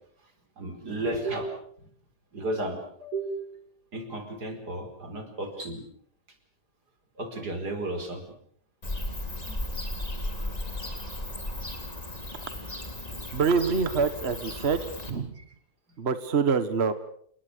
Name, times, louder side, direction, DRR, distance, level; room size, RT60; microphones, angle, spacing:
voice 1, 0.6-1.6 2.3-3.5 3.9-5.8 7.2-8.2 9.5-9.6 15.4-15.5, right 2 dB, 80° right, 7 dB, 5.0 m, -33 dB
Bird / Cricket, 8.8-15.1, left 1 dB, 25° left, 3.6 m, -35 dB
voice 2, 13.3-14.8 15.1-15.3 16.0-16.9, right 5 dB, 40° right, 11 dB, 1.6 m, -25 dB
29.0 x 20.5 x 6.8 m, 0.63 s
omnidirectional pair, 1.7 m